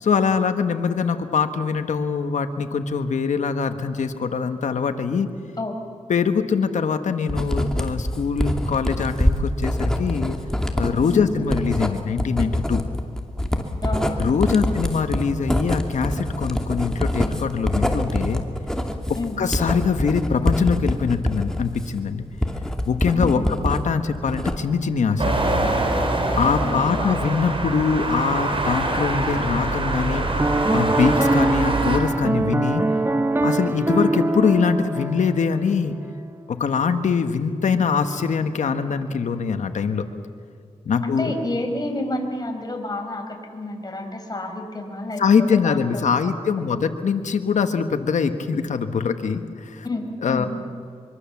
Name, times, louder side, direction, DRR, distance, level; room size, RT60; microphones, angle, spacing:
voice 1, 0.0-5.3 6.1-10.4 10.7-12.8 14.2-18.4 19.0-19.1 19.4-22.2 22.9-25.3 26.3-30.2 30.7-32.8 33.4-35.9 36.5-40.0 40.8-41.3 45.2-49.8 50.2-50.5, left 5 dB, 80° left, 8 dB, 1.4 m, -23 dB
Writing, 7.3-23.8 24.1-24.9, left 1 dB, 5° left, 2.7 m, -25 dB
voice 2, 13.8-14.7 19.1-19.4 23.2-23.5 26.6-27.3 41.0-45.9 46.2-46.8 49.8-50.5, left 2 dB, 35° left, 3 dB, 5.3 m, -30 dB
sound 1, 25.2-32.0, right 2 dB, 45° right, 4.6 m, -24 dB
Piano, 30.4-35.7, right 2 dB, 20° right, 1.1 m, -23 dB
24.5 x 23.5 x 7.3 m, 2.2 s
cardioid pair, 55°, 12 cm